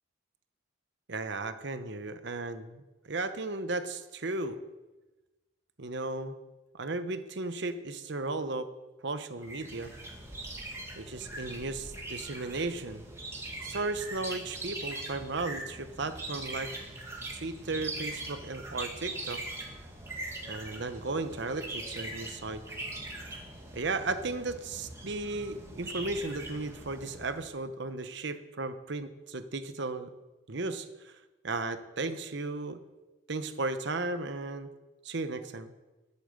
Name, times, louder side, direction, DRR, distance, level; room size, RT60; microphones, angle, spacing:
voice 1, 1.1-4.6 5.8-6.4 6.7-8.7 9.0-9.9 11.0-13.0 13.6-16.7 17.3-19.4 20.5-22.6 23.7-30.1 30.5-31.1 31.4-32.8 33.3-34.7 35.0-35.7, right 3 dB, 60° right, 10 dB, 0.9 m, -35 dB
sound 1, 9.4-27.4, right 2 dB, 15° right, 1.8 m, -41 dB
11.5 x 8.5 x 6.8 m, 1.1 s
head